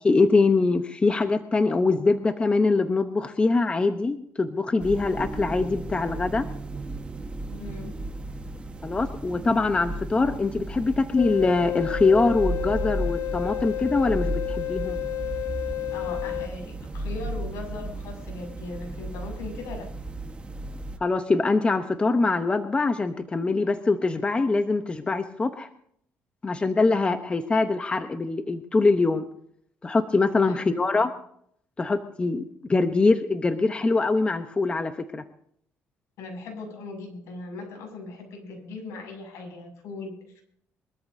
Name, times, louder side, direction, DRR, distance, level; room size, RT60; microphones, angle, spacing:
voice 1, 0.0-6.5 8.8-15.0 21.0-25.7 26.4-29.2 29.8-31.1 31.8-32.4 32.7-35.2, left 3 dB, 20° left, 8 dB, 0.9 m, -23 dB
sound 1, 4.8-21.0, right 2 dB, 20° right, 1.4 m, -35 dB
voice 2, 7.5-8.0 15.9-19.9 30.4-31.1 36.2-40.4, left 3 dB, 80° left, 2 dB, 6.6 m, -39 dB
sound 2, 11.2-16.5, left 14 dB, 65° left, 0.7 m, -31 dB
24.0 x 13.5 x 2.8 m, 0.66 s
cardioid pair, 110°, 5 cm